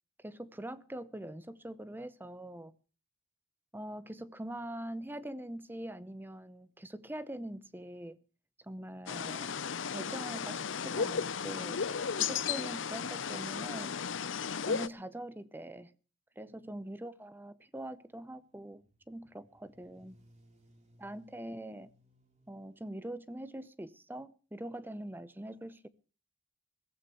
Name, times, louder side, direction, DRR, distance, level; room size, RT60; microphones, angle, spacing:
voice 1, 0.2-2.7 3.7-8.2 8.6-9.5 9.9-11.8 12.1-14.0 14.7-15.9 16.4-20.2 21.0-21.9 22.5-25.9, right 1 dB, 10° right, 0.7 m, -43 dB
sound 1, 9.1-14.9, left 6 dB, 70° left, 0.7 m, -35 dB
sound 2, 17.7-22.8, equal, 35° right, 3.6 m, -65 dB
22.0 x 15.5 x 3.1 m
head